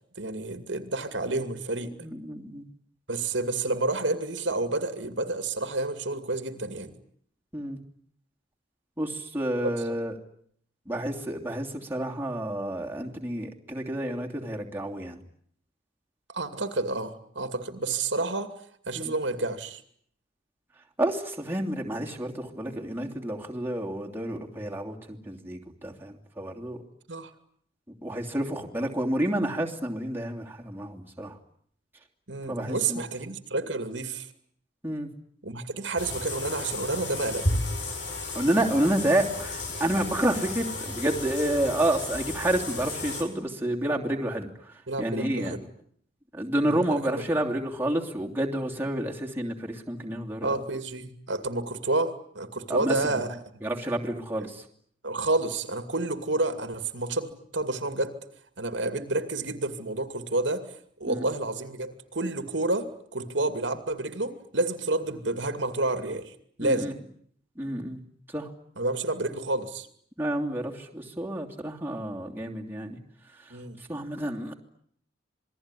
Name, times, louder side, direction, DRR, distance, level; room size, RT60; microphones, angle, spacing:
voice 1, 0.2-2.0 3.1-6.9 9.6-9.7 16.3-18.5 18.9-19.8 27.1-27.3 32.3-34.3 35.4-37.5 44.9-45.6 46.6-47.2 50.4-53.4 53.6-53.8 54.4-54.5 55.0-58.2 58.6-60.7 61.0-66.9 68.8-69.9 73.5-73.8, right 2 dB, 65° right, 9 dB, 2.4 m, -30 dB
voice 2, 2.0-2.6 7.5-7.8 9.0-10.1 10.9-15.2 18.9-19.1 21.0-26.8 28.0-31.4 32.5-33.0 34.8-35.1 38.3-45.6 46.3-50.6 52.7-53.0 53.6-54.7 61.0-61.3 66.6-66.9 67.6-68.0 68.3-68.5 70.2-73.0 73.9-74.5, right 1 dB, 10° right, -1 dB, 2.9 m, -29 dB
sound 1, 36.0-43.2, left 2 dB, 65° left, 7.1 m, -33 dB
27.0 x 21.0 x 9.9 m, 0.66 s
head